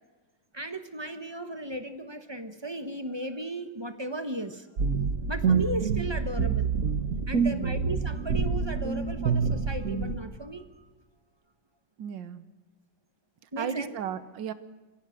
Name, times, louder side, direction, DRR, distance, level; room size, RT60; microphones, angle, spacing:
voice 1, 0.5-4.7 5.3-6.7 7.3-10.8 13.5-13.9, right 1 dB, 15° right, 9 dB, 1.0 m, -36 dB
sound 1, 4.8-10.2, right 5 dB, 50° right, 1.7 m, -27 dB
voice 2, 7.3-7.7 12.0-12.4 13.6-14.5, right 8 dB, 90° right, 13 dB, 1.7 m, -35 dB
28.5 x 16.0 x 6.4 m, 1.2 s
omnidirectional pair, 1.9 m